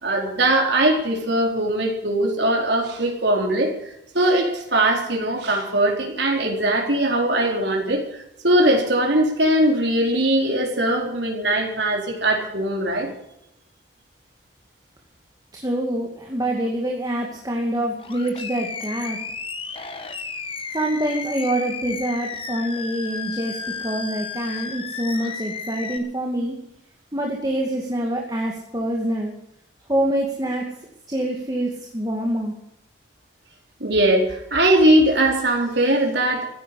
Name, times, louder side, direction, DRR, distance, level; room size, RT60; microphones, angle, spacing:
voice 1, 0.0-3.7 4.1-13.1 33.8-36.4, right 1 dB, 70° right, 1 dB, 4.1 m, -20 dB
voice 2, 15.5-19.2 20.7-26.6 27.1-29.3 29.9-30.7 31.1-32.5, right 1 dB, 20° right, 0 dB, 2.3 m, -25 dB
Animal, 18.0-26.0, left 4 dB, 30° left, 1.4 m, -33 dB
15.5 x 10.5 x 8.4 m, 0.80 s
head